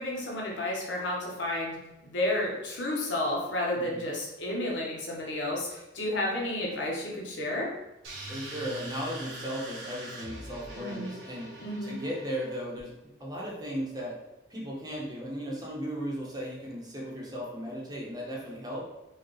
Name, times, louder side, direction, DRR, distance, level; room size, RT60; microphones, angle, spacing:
voice 1, 0.0-7.7 10.8-11.1 11.6-12.0, left 1 dB, 85° left, -2 dB, 0.9 m, -31 dB
voice 2, 3.7-4.1 8.3-14.2 14.5-18.9, equal, 20° right, -3 dB, 0.8 m, -36 dB
sound 1, 8.0-12.8, right 2 dB, 90° right, 1.0 m, -43 dB
4.5 x 2.3 x 3.1 m, 0.95 s
head